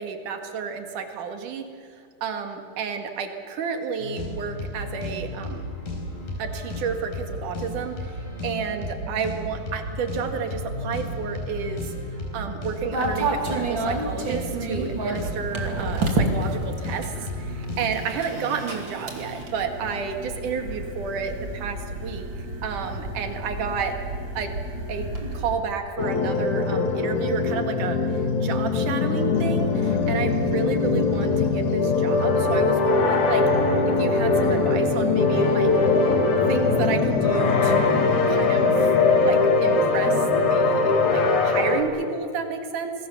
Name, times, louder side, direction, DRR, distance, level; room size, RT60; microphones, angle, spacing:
voice 1, 0.0-1.7 2.2-5.7 6.4-11.8 12.3-22.3 22.6-24.0 24.3-24.5 24.9-33.4 33.9-35.7 36.5-38.9 39.2-42.9, right 6 dB, 65° right, 6 dB, 3.3 m, -31 dB
sound 1, 4.0-18.0, left 1 dB, 75° left, 6.2 m, -34 dB
sound 2, 12.9-25.6, right 2 dB, 35° right, 2.9 m, -30 dB
sound 3, 26.0-41.8, left 4 dB, 60° left, 3.4 m, -21 dB
27.0 x 21.0 x 7.1 m, 2.2 s
omnidirectional pair, 4.0 m